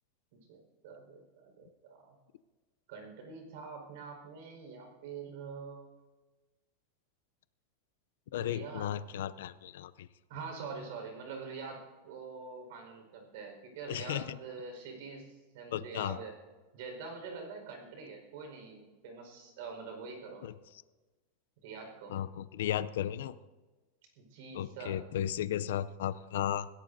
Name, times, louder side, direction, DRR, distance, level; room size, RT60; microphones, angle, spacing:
voice 1, 0.3-2.2 2.9-5.8 8.4-8.9 10.3-16.3 16.7-20.5 21.6-22.1 24.1-25.0, right 4 dB, 65° right, 4 dB, 4.8 m, -45 dB
voice 2, 8.3-10.1 13.9-14.4 15.7-16.2 20.4-20.5 22.1-23.3 24.5-26.7, left 11 dB, 80° left, 16 dB, 0.5 m, -35 dB
21.5 x 16.5 x 2.7 m, 1.3 s
supercardioid pair, 155°, 0 cm